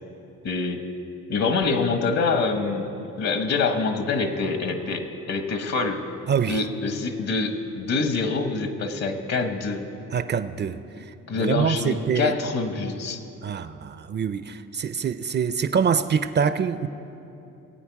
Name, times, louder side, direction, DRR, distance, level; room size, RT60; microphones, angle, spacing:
voice 1, 0.4-0.8 1.3-2.9 3.2-6.0 6.5-9.8 11.3-13.2, left 4 dB, 60° left, 7 dB, 1.3 m, -25 dB
voice 2, 6.3-6.6 10.1-10.8 11.3-12.3 13.4-16.9, right 7 dB, 35° right, 12 dB, 0.5 m, -25 dB
18.0 x 8.9 x 4.7 m, 2.8 s
cardioid pair, 90°, 30 cm